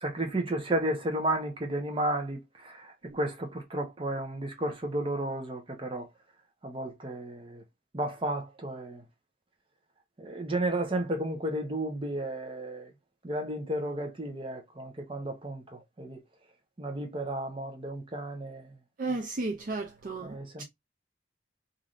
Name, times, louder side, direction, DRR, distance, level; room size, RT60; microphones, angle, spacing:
voice 1, 0.0-6.1 6.6-7.6 7.9-9.0 10.2-12.9 13.2-16.2 16.8-18.8 20.2-20.6, right 1 dB, 30° right, 0.8 m, -33 dB
voice 2, 19.0-20.6, right 3 dB, 45° right, 0.4 m, -34 dB
3.2 x 2.6 x 2.4 m
head